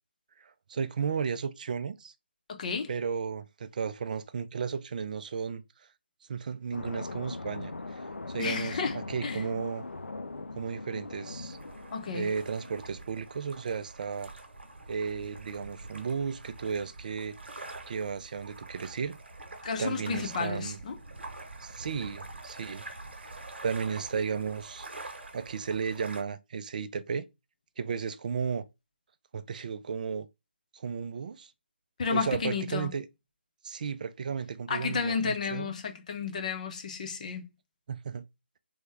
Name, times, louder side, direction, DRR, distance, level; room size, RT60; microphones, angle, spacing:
voice 1, 0.4-2.1 2.9-5.6 6.3-9.9 10.5-11.6 12.1-14.3 14.9-17.4 17.9-19.2 19.8-20.8 21.6-22.9 23.2-24.9 25.3-27.3 27.8-28.6 29.3-30.3 30.7-31.5 32.1-33.1 33.6-35.7 37.9-38.2, right 6 dB, 45° right, 0.4 m, -34 dB
voice 2, 2.5-2.9 8.4-9.4 11.9-12.3 19.6-21.0 32.0-32.9 34.7-37.5, left 5 dB, 40° left, 0.7 m, -32 dB
sound 1, 6.7-13.1, left 3 dB, 90° left, 0.4 m, -40 dB
Lake water sound, 11.2-26.2, right 2 dB, 70° right, 1.0 m, -46 dB
3.5 x 2.2 x 3.2 m
figure-of-eight pair, 150°, 6 cm